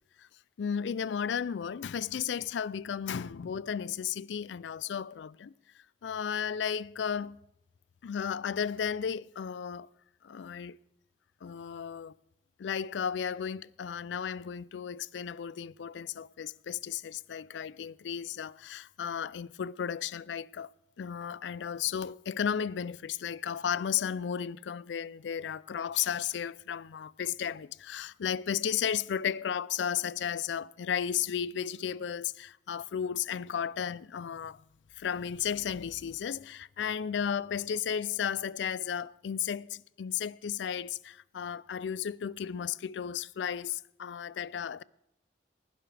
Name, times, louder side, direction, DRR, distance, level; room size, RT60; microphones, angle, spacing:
voice 1, 0.6-5.5 6.0-7.4 8.0-9.9 10.2-10.8 11.4-12.1 12.6-20.7 21.0-34.6 35.0-44.8, left 8 dB, 90° left, 0.4 m, -34 dB
20.0 x 11.5 x 3.3 m
head